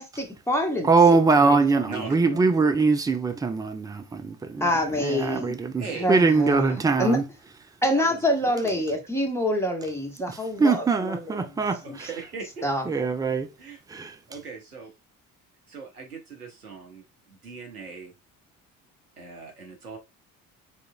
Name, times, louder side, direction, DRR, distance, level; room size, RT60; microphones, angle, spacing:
voice 1, 0.0-0.9 1.4-1.6 4.6-5.5 6.0-7.2 7.8-11.4 11.9-12.0 12.6-12.8, left 1 dB, 5° left, 1.2 m, -26 dB
voice 2, 0.8-4.7 5.0-7.3 10.3-11.8 12.9-13.5 13.9-14.2, right 4 dB, 10° right, 0.3 m, -22 dB
voice 3, 1.9-2.6 5.8-6.2 6.8-6.9 7.9-8.8 11.8-12.7 13.6-13.8 14.3-14.9 15.7-18.1 19.2-20.0, right 4 dB, 85° right, 0.8 m, -39 dB
4.0 x 3.8 x 2.2 m
figure-of-eight pair, 50°, 44 cm